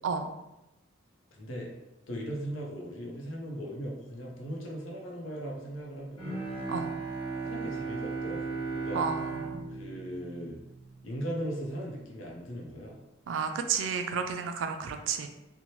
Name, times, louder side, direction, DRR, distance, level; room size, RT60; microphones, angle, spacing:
voice 1, 1.3-1.7 2.1-6.5 7.4-9.1 9.7-10.6 11.0-13.0, equal, 70° left, -1 dB, 0.6 m, -38 dB
Bowed string instrument, 6.2-11.3, right 4 dB, 25° left, 0.9 m, -36 dB
voice 2, 8.9-9.6 13.3-15.3, right 6 dB, 70° right, 6 dB, 0.3 m, -31 dB
2.7 x 2.1 x 3.0 m, 0.94 s
head